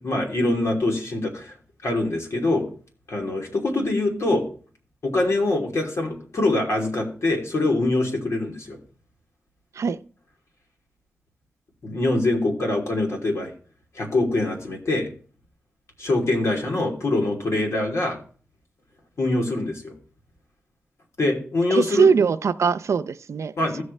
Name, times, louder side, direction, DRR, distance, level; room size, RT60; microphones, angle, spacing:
voice 1, 0.0-1.6 1.8-2.7 3.1-4.4 5.0-8.8 11.8-13.5 13.9-15.1 16.0-18.2 19.2-19.9 21.2-22.1 23.6-23.8, left 2 dB, 70° left, 2.9 m, -24 dB
voice 2, 21.7-23.8, right 6 dB, 75° right, 0.5 m, -21 dB
16.0 x 6.4 x 3.2 m
wide cardioid pair, 75°, 5 cm